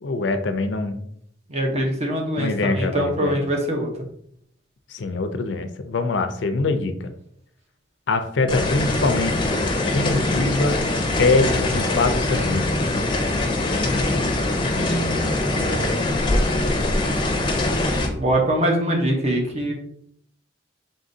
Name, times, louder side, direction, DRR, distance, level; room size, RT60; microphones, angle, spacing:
voice 1, 0.0-1.0 2.4-3.4 4.9-7.1 8.1-9.5 9.8-10.8 11.2-12.7, left 3 dB, 75° left, 8 dB, 0.5 m, -23 dB
voice 2, 1.5-3.9 14.6-16.1 18.2-19.7, right 1 dB, 35° right, 1 dB, 0.8 m, -24 dB
sound 1, 8.5-18.1, left 2 dB, 25° left, 0.6 m, -23 dB
3.8 x 3.8 x 2.6 m, 0.69 s
head